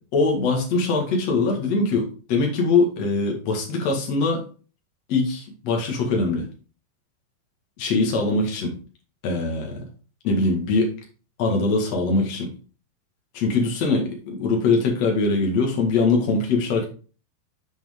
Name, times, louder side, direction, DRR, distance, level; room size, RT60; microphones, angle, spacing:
voice 1, 0.1-4.4 5.1-6.5 7.8-8.8 9.2-9.8 10.2-11.0 11.4-12.5 13.3-16.9, left 3 dB, 50° left, 1 dB, 2.3 m, -22 dB
8.2 x 6.1 x 3.7 m, 0.39 s
omnidirectional pair, 5.5 m